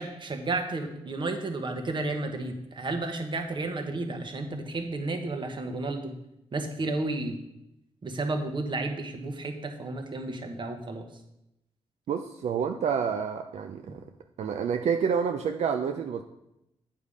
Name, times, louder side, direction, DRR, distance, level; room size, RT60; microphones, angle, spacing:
voice 1, 0.0-6.1 6.5-7.4 8.0-11.1, right 2 dB, 45° right, 5 dB, 1.2 m, -32 dB
voice 2, 12.1-14.0 14.4-16.2, right 7 dB, 80° right, 5 dB, 0.5 m, -28 dB
8.4 x 5.5 x 5.0 m, 0.86 s
cardioid pair, 95°, 11 cm